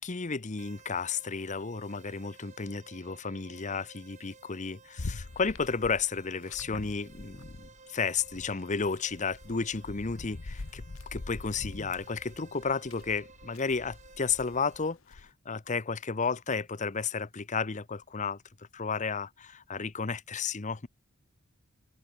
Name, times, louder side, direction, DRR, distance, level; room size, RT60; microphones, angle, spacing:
voice 1, 0.0-10.8 11.1-20.9, left 5 dB, 35° left, 0.8 m, -33 dB
sound 1, 0.6-14.9, right 4 dB, 35° right, 2.4 m, -56 dB
sound 2, 5.0-7.8 8.1-15.3, left 2 dB, 65° left, 1.0 m, -44 dB
open air
head